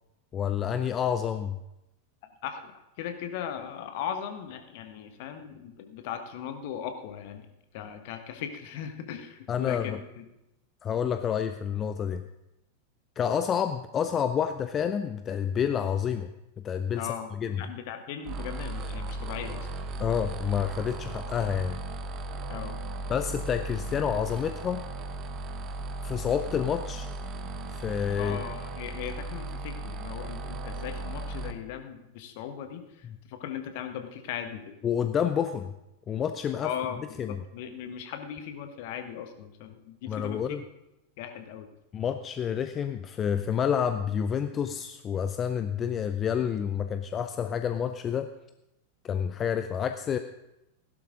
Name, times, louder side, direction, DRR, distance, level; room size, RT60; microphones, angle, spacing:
voice 1, 0.3-1.6 9.5-10.0 10.8-12.2 13.2-16.3 16.6-17.6 20.0-21.8 23.1-24.8 26.0-27.1 27.7-28.4 34.8-35.7 36.1-36.7 37.2-37.4 40.1-40.6 41.9-48.3 49.0-50.2, left 8 dB, 25° left, 9 dB, 0.5 m, -29 dB
voice 2, 2.4-7.5 7.7-10.2 17.0-17.3 17.6-19.7 22.5-22.8 28.2-34.7 36.6-37.0 37.3-40.4 41.2-41.7, left 9 dB, 50° left, 7 dB, 1.4 m, -38 dB
sound 1, 18.2-31.5, right 2 dB, 35° right, 1.2 m, -36 dB
16.0 x 11.5 x 3.8 m, 0.91 s
figure-of-eight pair, 90°, 0 cm